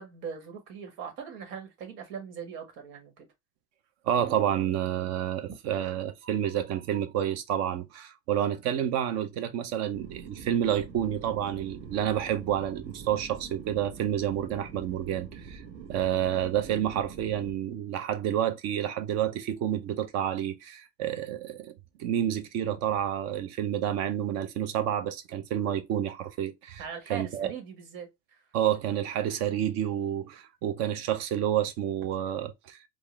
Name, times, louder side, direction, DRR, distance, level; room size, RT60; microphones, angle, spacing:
voice 1, 0.0-3.3 26.8-28.4, right 7 dB, 75° right, 1.6 m, -40 dB
voice 2, 4.0-15.6 15.9-21.7 22.0-26.8 27.1-27.5 28.5-32.8, right 10 dB, 35° right, 0.5 m, -29 dB
sound 1, 9.9-17.5, right 6 dB, 55° right, 1.2 m, -45 dB
3.6 x 2.5 x 3.0 m
cardioid pair, 160°, 45 cm